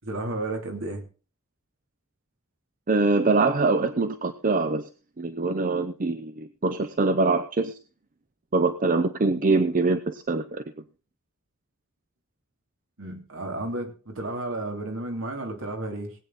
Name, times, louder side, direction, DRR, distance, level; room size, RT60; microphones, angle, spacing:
voice 1, 0.0-1.0 13.0-16.2, right 2 dB, 65° right, 3 dB, 3.1 m, -32 dB
voice 2, 2.9-4.9 5.2-7.8 8.5-10.6, right 3 dB, 40° right, 10 dB, 0.7 m, -24 dB
19.5 x 8.8 x 4.1 m, 0.35 s
head